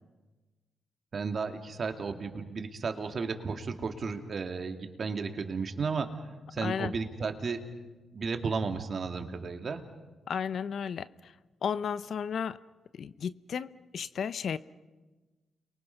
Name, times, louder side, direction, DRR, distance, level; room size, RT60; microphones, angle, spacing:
voice 1, 1.1-6.1 6.5-7.6 8.1-9.8, right 4 dB, 50° right, 5 dB, 2.5 m, -33 dB
voice 2, 6.6-6.9 10.3-11.3 11.6-12.6 12.9-14.6, left 7 dB, 65° left, 15 dB, 0.7 m, -33 dB
30.0 x 23.0 x 5.4 m, 1.2 s
cardioid pair, 60°, 0 cm